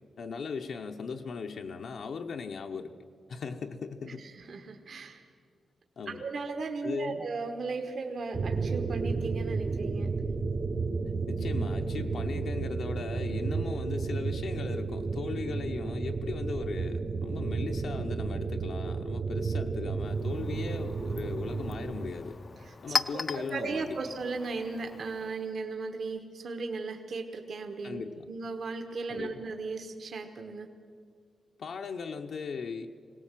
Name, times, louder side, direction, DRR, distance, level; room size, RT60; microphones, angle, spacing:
voice 1, 0.2-2.9 3.3-4.2 6.0-6.2 6.8-7.3 11.1-22.4 22.8-24.0 27.8-28.3 29.1-29.4 31.6-32.9, left 5 dB, 65° left, 3 dB, 0.8 m, -38 dB
voice 2, 4.1-5.2 6.1-10.1 22.6-22.7 23.1-30.7, right 4 dB, 55° right, 5 dB, 1.1 m, -36 dB
sound 1, 8.3-22.1, right 4 dB, 35° right, 0.6 m, -32 dB
Chink clink, 20.0-25.5, left 4 dB, 35° left, 0.5 m, -38 dB
21.5 x 18.0 x 7.4 m, 2.2 s
wide cardioid pair, 175°, 0 cm